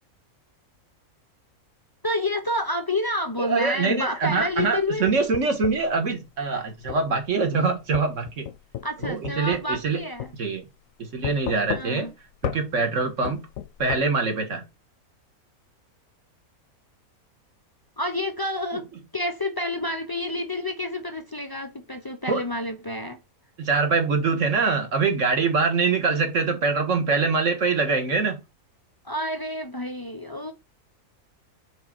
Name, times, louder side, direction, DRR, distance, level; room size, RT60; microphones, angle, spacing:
voice 1, 2.0-5.1 8.8-10.3 11.7-12.1 18.0-18.9 19.1-23.2 29.0-30.5, left 1 dB, 35° left, 0.3 m, -29 dB
voice 2, 3.4-8.5 9.0-10.0 10.4-10.7 11.0-12.1 12.4-13.5 13.8-14.6 22.3-22.4 23.6-28.4, right 4 dB, 55° right, 1.8 m, -24 dB
sound 1, 4.4-5.9 6.9-7.1 7.9-9.9 10.2-10.3 11.2-12.1 12.4-12.6 13.2-14.0, left 11 dB, 70° left, 0.9 m, -33 dB
5.4 x 3.9 x 5.9 m
omnidirectional pair, 1.6 m